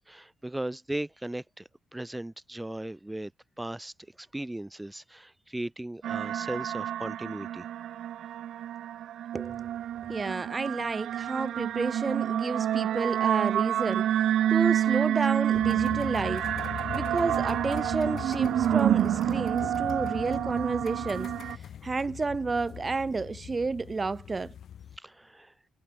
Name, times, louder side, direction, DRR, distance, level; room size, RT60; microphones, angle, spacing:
voice 1, 0.0-3.3 3.6-7.7 25.0-25.5, right 1 dB, 10° right, 1.1 m, -37 dB
sound 1, 6.0-21.6, right 11 dB, 75° right, 0.4 m, -28 dB
voice 2, 9.3-9.7 10.1-16.5 16.9-24.5, right 4 dB, 30° right, 0.7 m, -31 dB
sound 2, 15.5-25.0, left 9 dB, 65° left, 3.3 m, -40 dB
cardioid pair, 90°, 0 cm